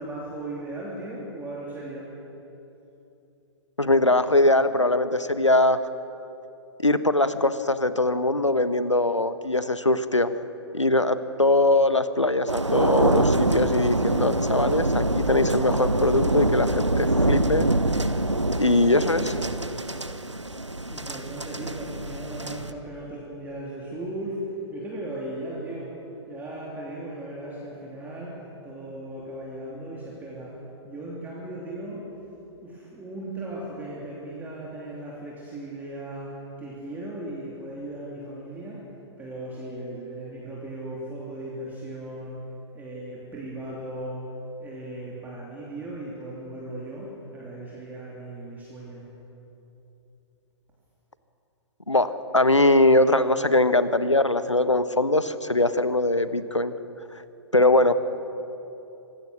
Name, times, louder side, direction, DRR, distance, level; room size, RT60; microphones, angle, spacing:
voice 1, 0.0-2.1 20.9-25.9 26.3-30.6 30.8-32.1 32.6-38.9 39.2-42.4 42.7-44.3 44.6-49.1, right 1 dB, 10° right, -4 dB, 3.2 m, -37 dB
voice 2, 3.8-5.8 6.8-10.3 10.7-17.7 18.6-19.4 51.9-56.7 57.5-57.9, left 2 dB, 85° left, 12 dB, 1.1 m, -21 dB
sound 1, 12.5-22.7, right 2 dB, 85° right, 1.0 m, -25 dB
25.5 x 19.0 x 6.3 m, 3.0 s
figure-of-eight pair, 115°, 15 cm